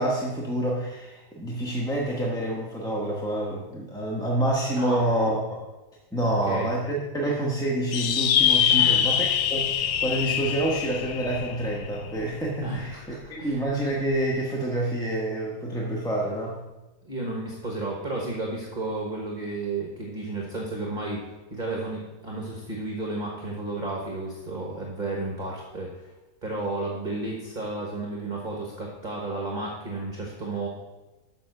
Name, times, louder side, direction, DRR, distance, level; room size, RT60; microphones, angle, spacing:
voice 1, 0.0-5.6 6.1-16.6, right 1 dB, 5° left, -4 dB, 0.7 m, -27 dB
voice 2, 6.2-6.7 8.7-9.2 12.6-13.6 17.0-21.2 21.5-26.1 26.4-30.7, right 2 dB, 30° right, -2 dB, 1.2 m, -32 dB
sound 1, 7.9-12.7, left 9 dB, 75° left, 1.1 m, -24 dB
7.0 x 5.8 x 6.5 m, 1.1 s
omnidirectional pair, 1.8 m